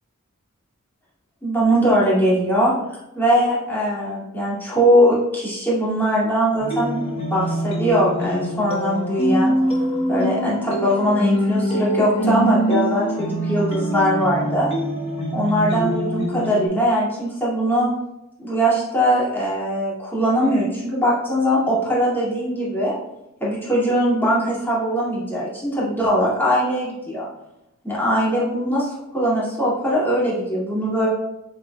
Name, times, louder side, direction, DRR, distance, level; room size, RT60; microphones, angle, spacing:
voice 1, 1.4-2.7 3.2-7.0 7.3-9.5 10.1-14.7 15.3-17.9 18.4-23.0 23.4-27.3 27.8-31.1, equal, 10° left, -7 dB, 2.1 m, -21 dB
sound 1, 6.6-16.7, equal, 30° left, 1.1 m, -24 dB
6.8 x 6.7 x 2.2 m, 0.89 s
head